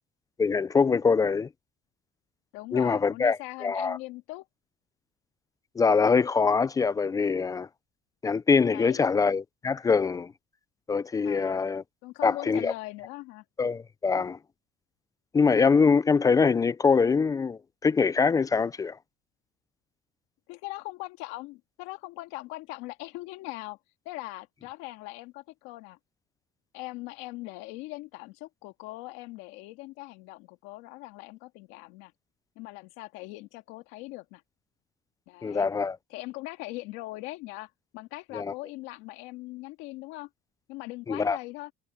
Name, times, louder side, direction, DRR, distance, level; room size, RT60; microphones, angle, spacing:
voice 1, 0.4-1.5 2.7-4.0 5.8-7.7 8.2-10.3 10.9-11.8 12.2-12.7 13.6-14.4 15.3-19.0 35.4-36.0 38.3-38.5 41.1-41.4, left 5 dB, 20° left, 0.5 m, -24 dB
voice 2, 2.5-4.5 8.7-9.1 11.2-11.6 12.0-13.4 20.5-23.8 24.1-26.0 26.7-32.1 32.6-34.4 35.3-35.7 36.1-40.3 40.7-41.7, left 20 dB, 80° left, 1.9 m, -41 dB
cardioid pair, 135°, 19 cm